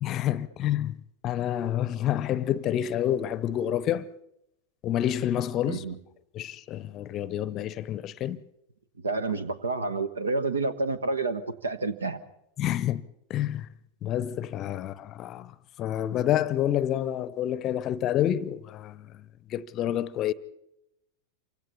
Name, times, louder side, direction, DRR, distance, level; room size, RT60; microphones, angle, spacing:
voice 1, 0.0-4.1 4.8-5.8 6.3-8.4 12.6-13.0 13.3-13.7 14.0-20.3, left 11 dB, 35° left, 0.7 m, -28 dB
voice 2, 9.0-12.2, right 3 dB, 75° right, 1.2 m, -29 dB
28.0 x 24.5 x 4.1 m
figure-of-eight pair, 90°, 0 cm